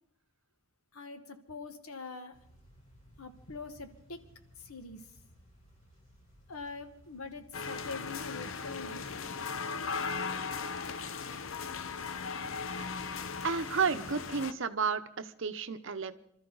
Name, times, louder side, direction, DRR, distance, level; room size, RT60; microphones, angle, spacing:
voice 1, 0.9-2.4 3.2-4.2 4.6-5.2 6.5-9.4, left 4 dB, 80° left, 9 dB, 1.3 m, -44 dB
sound 1, 2.3-13.6, equal, 35° left, 4.3 m, -60 dB
sound 2, 7.5-14.5, left 5 dB, 65° left, 0.7 m, -37 dB
voice 2, 13.4-16.1, right 5 dB, 60° right, 11 dB, 0.8 m, -32 dB
25.5 x 13.0 x 4.0 m, 0.76 s
head